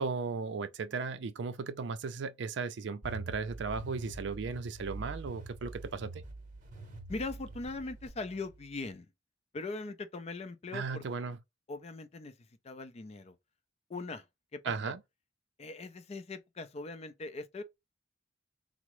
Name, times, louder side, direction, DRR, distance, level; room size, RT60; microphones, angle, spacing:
voice 1, 0.0-6.2 10.7-11.4 14.6-15.0, right 4 dB, 65° right, 0.4 m, -36 dB
sound 1, 3.0-8.9, right 2 dB, 45° right, 0.8 m, -45 dB
voice 2, 7.1-9.1 9.5-11.0 11.7-12.3 12.6-13.4 13.9-14.3 14.5-14.9 15.6-17.6, left 3 dB, 35° left, 0.4 m, -40 dB
3.5 x 2.0 x 3.0 m
head